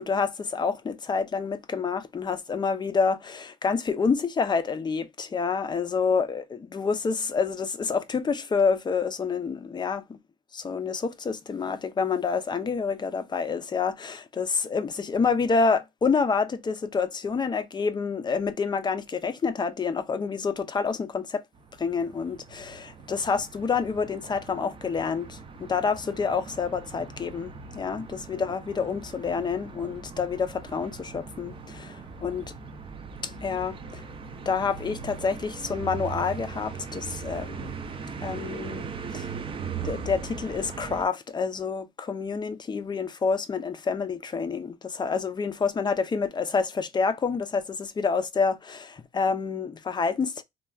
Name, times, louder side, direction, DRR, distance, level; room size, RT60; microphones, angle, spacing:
voice 1, 0.0-10.2 10.5-21.4 21.8-32.4 33.2-34.0 34.5-37.7 38.2-38.9 39.1-39.3 39.8-50.4, left 5 dB, 25° left, 0.5 m, -28 dB
sound 1, 21.6-41.1, right 5 dB, 30° right, 0.5 m, -39 dB
3.2 x 2.3 x 2.3 m
cardioid pair, 110°, 17 cm